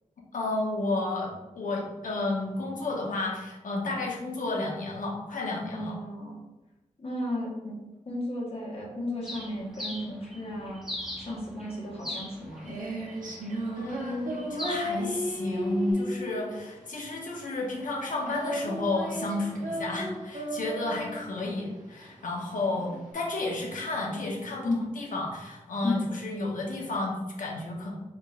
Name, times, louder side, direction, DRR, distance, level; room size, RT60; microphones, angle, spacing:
voice 1, 0.3-5.9 13.7-28.0, left 2 dB, 85° left, -2 dB, 1.0 m, -32 dB
voice 2, 5.7-6.4 7.0-10.8 11.2-12.8 22.7-22.9 24.6-24.8 25.8-26.1, left 1 dB, 45° left, -4 dB, 1.3 m, -34 dB
Bird, 9.2-15.9, left 1 dB, 5° right, 1.2 m, -41 dB
Female singing, 12.1-23.1, equal, 90° right, 0.9 m, -35 dB
4.7 x 3.7 x 2.5 m, 1.1 s
wide cardioid pair, 75°, 13 cm